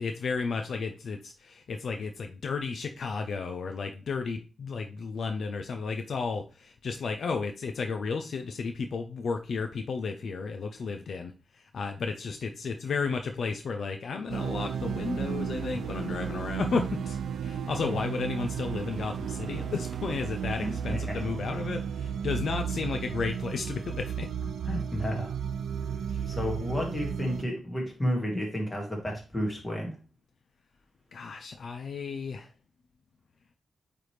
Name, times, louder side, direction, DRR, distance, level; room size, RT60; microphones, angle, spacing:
voice 1, 0.0-17.2 17.4-24.3 26.1-26.2 31.1-32.5, left 4 dB, 65° left, 6 dB, 0.5 m, -33 dB
sound 1, 14.3-27.4, right 8 dB, 85° right, 0.4 m, -34 dB
voice 2, 20.6-21.2 24.6-25.3 26.3-30.0, equal, 15° left, 0 dB, 1.9 m, -31 dB
8.6 x 3.4 x 3.2 m, 0.35 s
wide cardioid pair, 125°, 0 cm